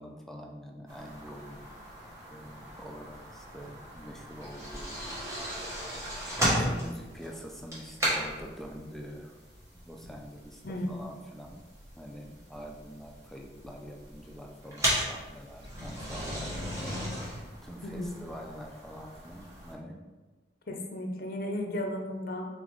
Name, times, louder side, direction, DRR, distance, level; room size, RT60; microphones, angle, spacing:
voice 1, 0.0-1.6 2.2-5.0 6.4-9.4 9.7-10.6 10.9-11.6 12.0-16.5 17.6-20.0, equal, ahead, 1 dB, 0.3 m, -45 dB
sound 1, 0.9-19.7, equal, 15° right, 1.3 m, -36 dB
voice 2, 10.6-11.0 17.8-18.1 20.7-22.5, left 1 dB, 55° left, 2 dB, 0.6 m, -34 dB
4.1 x 3.9 x 3.1 m, 1.2 s
head